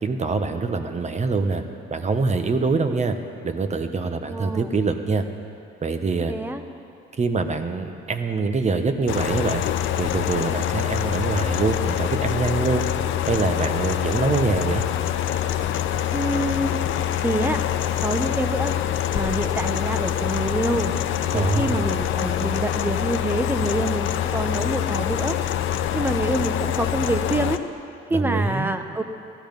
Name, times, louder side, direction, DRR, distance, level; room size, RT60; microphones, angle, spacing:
voice 1, 0.0-1.6 1.9-3.1 3.4-5.2 5.8-6.3 7.2-9.6 10.0-12.9 13.3-14.8 21.3-21.9 28.1-28.7, right 4 dB, 35° right, 8 dB, 1.0 m, -24 dB
voice 2, 4.3-4.7 6.3-6.6 16.1-16.8 17.2-17.6 18.0-20.9 21.3-25.4 25.9-27.6 28.1-29.0, right 1 dB, 10° right, 8 dB, 0.9 m, -26 dB
sound 1, 9.1-27.6, left 11 dB, 75° left, 0.6 m, -25 dB
14.5 x 12.5 x 5.3 m, 2.8 s
cardioid pair, 90°, 20 cm